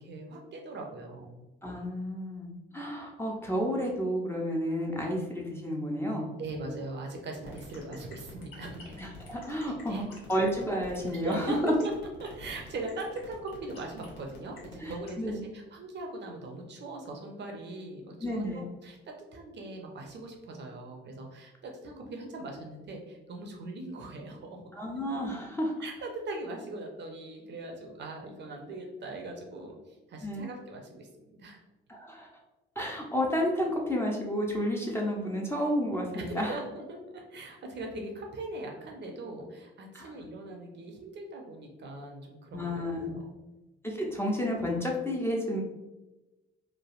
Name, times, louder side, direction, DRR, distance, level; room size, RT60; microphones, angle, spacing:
voice 1, 0.0-1.4 6.4-9.0 9.6-10.1 11.1-11.9 12.2-24.6 25.8-31.6 36.1-43.5, right 2 dB, 35° right, 2 dB, 0.6 m, -40 dB
voice 2, 1.6-6.3 9.0-10.0 10.3-11.7 14.8-14.9 15.2-15.4 18.2-18.6 24.7-25.7 30.2-30.4 31.9-32.3 32.8-36.6 39.9-40.1 42.5-43.2 43.8-45.6, equal, 10° left, -2 dB, 0.5 m, -31 dB
sound 1, 7.4-15.1, left 2 dB, 75° left, 0.7 m, -49 dB
3.2 x 2.4 x 2.4 m, 1.1 s
figure-of-eight pair, 45°, 30 cm